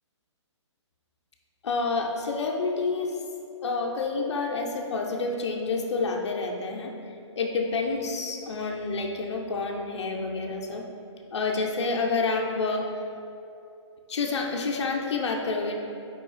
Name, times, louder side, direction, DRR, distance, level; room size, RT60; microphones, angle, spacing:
voice 1, 1.6-3.2 3.6-6.9 7.4-10.8 11.3-12.9 14.1-15.8, left 3 dB, 65° left, 1 dB, 0.8 m, -28 dB
5.2 x 4.8 x 4.9 m, 2.7 s
hypercardioid pair, 165°, 16 cm